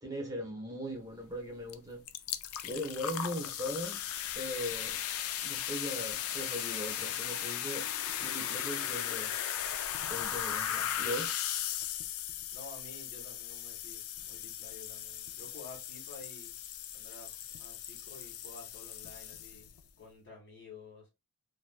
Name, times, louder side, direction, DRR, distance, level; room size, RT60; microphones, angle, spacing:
voice 1, 0.0-2.0 2.6-4.0 4.3-5.0 5.4-7.8 8.2-9.3 10.1-11.4, equal, 15° right, 1.1 m, -39 dB
sound 1, 1.7-1.8 2.1-19.8, left 10 dB, 75° left, 0.4 m, -37 dB
voice 2, 10.6-11.1 12.5-16.6 16.9-19.7 20.0-21.1, left 3 dB, 55° left, 1.7 m, -51 dB
3.0 x 2.7 x 2.3 m
head